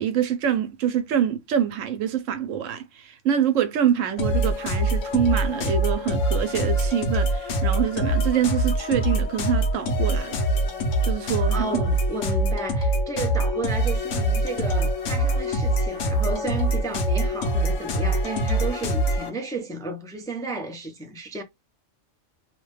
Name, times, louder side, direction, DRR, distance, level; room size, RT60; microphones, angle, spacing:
voice 1, 0.0-10.4 11.0-12.0, right 9 dB, 90° right, 1.0 m, -25 dB
sound 1, 4.2-19.3, right 1 dB, 80° left, 1.0 m, -24 dB
voice 2, 11.2-21.4, right 3 dB, 5° left, 0.4 m, -33 dB
2.7 x 2.2 x 3.2 m
omnidirectional pair, 1.3 m